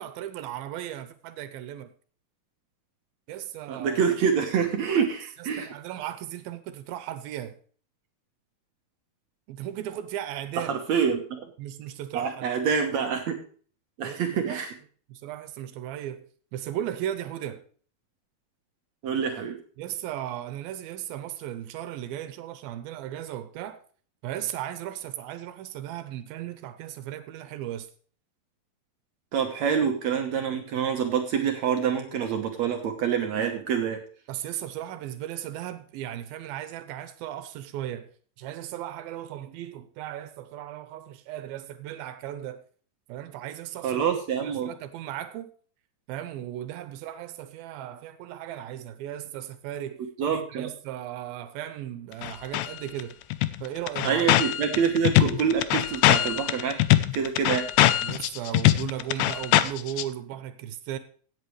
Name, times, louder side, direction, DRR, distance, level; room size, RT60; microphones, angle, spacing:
voice 1, 0.0-1.9 3.3-4.0 5.0-5.1 5.4-7.6 9.5-10.7 11.6-12.5 14.0-14.6 15.1-16.2 16.5-17.6 19.8-23.8 24.2-27.9 34.3-38.1 38.4-42.6 43.1-45.5 46.1-50.0 50.3-53.2 53.6-54.3 58.0-61.0, right 12 dB, 85° right, 11 dB, 2.6 m, -36 dB
voice 2, 3.7-5.7 10.7-11.5 12.1-13.4 14.0-14.7 19.0-19.6 29.3-34.0 43.8-44.7 50.2-50.7 54.0-56.8 57.1-57.7, right 7 dB, 65° right, 4 dB, 2.0 m, -26 dB
sound 1, 52.2-52.7 53.0-53.1 53.3-60.0, left 14 dB, 80° left, 2.0 m, -22 dB
16.5 x 8.2 x 3.2 m, 0.43 s
omnidirectional pair, 4.1 m